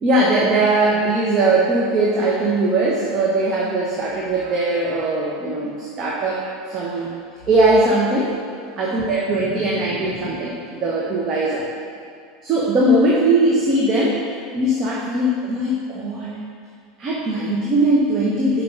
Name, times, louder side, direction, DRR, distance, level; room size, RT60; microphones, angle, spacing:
voice 1, 0.0-6.4 6.7-7.1 7.5-8.3 8.8-11.6 12.4-14.2 14.5-16.3 17.0-18.6, right 2 dB, 35° right, -4 dB, 1.1 m, -20 dB
6.8 x 4.8 x 5.3 m, 2.2 s
figure-of-eight pair, 75°, 0 cm